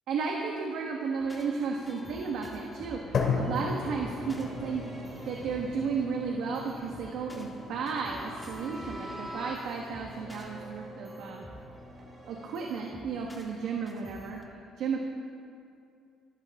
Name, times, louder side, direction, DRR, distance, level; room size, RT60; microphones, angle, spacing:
voice 1, 0.1-4.8 5.2-11.4 12.3-14.4 14.8-15.0, right 5 dB, 70° right, 0 dB, 1.7 m, -33 dB
sound 1, 1.2-14.4, equal, 10° left, 1.7 m, -48 dB
sound 2, 2.8-12.5, right 2 dB, 35° right, 2.5 m, -50 dB
sound 3, 3.1-11.2, left 4 dB, 45° left, 2.9 m, -36 dB
24.5 x 13.5 x 3.8 m, 2.4 s
cardioid pair, 150°, 0 cm